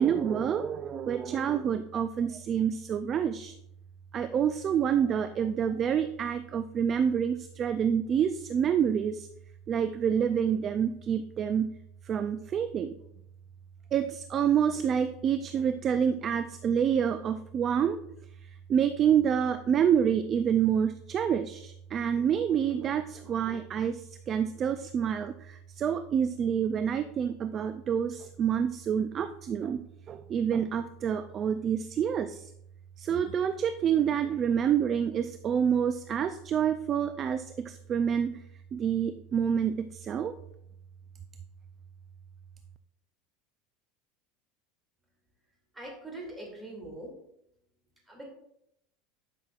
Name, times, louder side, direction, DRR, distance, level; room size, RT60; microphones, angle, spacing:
voice 1, 0.0-3.5 4.1-9.3 9.7-11.7 12.0-12.9 13.9-18.0 18.7-29.8 30.1-32.5 33.0-38.4 38.7-40.4, right 8 dB, 30° right, 10 dB, 0.3 m, -27 dB
voice 2, 45.7-47.1 48.1-48.3, right 1 dB, 10° right, -1 dB, 2.5 m, -42 dB
11.0 x 5.8 x 2.4 m, 0.78 s
supercardioid pair, 135°, 0 cm